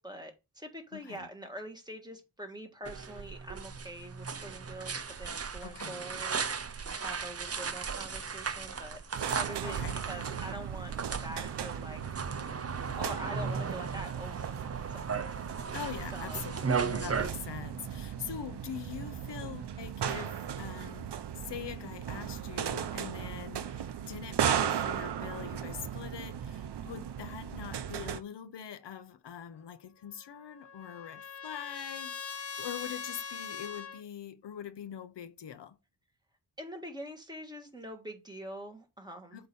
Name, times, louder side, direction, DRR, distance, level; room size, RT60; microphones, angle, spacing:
voice 1, 0.0-9.0 9.3-10.9 11.2-12.2 12.9-15.4 16.1-16.5 36.6-39.5, equal, 10° right, 1.6 m, -44 dB
voice 2, 0.9-1.3 5.6-6.0 9.6-10.0 15.7-35.8 39.3-39.5, left 9 dB, 80° left, 0.8 m, -43 dB
sound 1, 2.8-17.3, right 5 dB, 35° right, 0.7 m, -36 dB
sound 2, 9.1-28.2, right 9 dB, 80° right, 0.7 m, -37 dB
Trumpet, 30.1-34.0, left 6 dB, 35° left, 0.8 m, -42 dB
7.8 x 2.9 x 5.3 m
wide cardioid pair, 90°, 41 cm